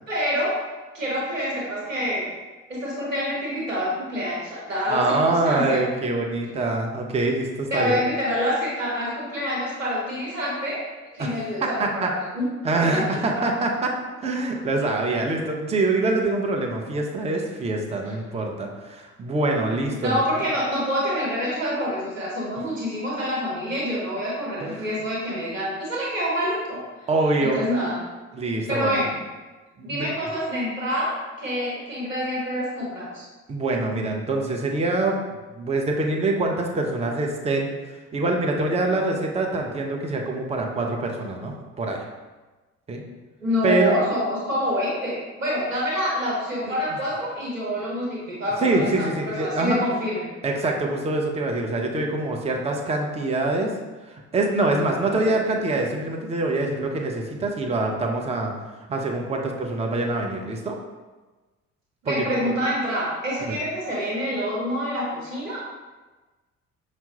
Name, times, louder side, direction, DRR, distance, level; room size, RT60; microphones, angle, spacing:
voice 1, 0.1-0.5 0.9-2.3 2.7-5.8 7.7-10.8 11.1-12.5 20.0-26.8 27.4-28.0 28.7-29.1 29.8-33.2 43.4-49.1 49.4-50.3 62.0-65.7, equal, 90° right, -6 dB, 0.9 m, -26 dB
voice 2, 4.9-8.0 11.2-11.3 11.6-12.1 12.6-13.9 14.2-20.5 24.6-24.9 27.1-27.6 28.3-29.0 29.8-30.1 33.5-35.2 35.6-42.0 42.9-43.0 43.6-44.0 48.6-49.8 50.4-53.7 54.0-58.5 58.9-60.8 62.0-62.1 62.4-62.5 63.4-63.5, right 2 dB, 15° right, 1 dB, 0.6 m, -25 dB
5.5 x 2.0 x 2.8 m, 1.2 s
figure-of-eight pair, 50°, 37 cm